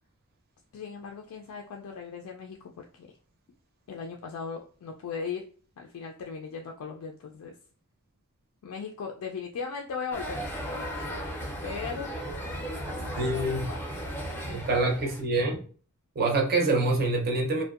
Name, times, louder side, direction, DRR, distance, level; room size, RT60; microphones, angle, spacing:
voice 1, 0.7-3.1 3.9-5.5 5.8-7.5 8.6-11.2 11.6-12.1 12.9-13.8, left 5 dB, 75° left, 0.3 m, -38 dB
sound 1, 10.1-15.2, equal, 10° left, 0.5 m, -35 dB
voice 2, 13.2-13.7 14.5-15.6 16.2-17.6, right 2 dB, 45° right, 0.6 m, -26 dB
2.6 x 2.1 x 2.3 m
head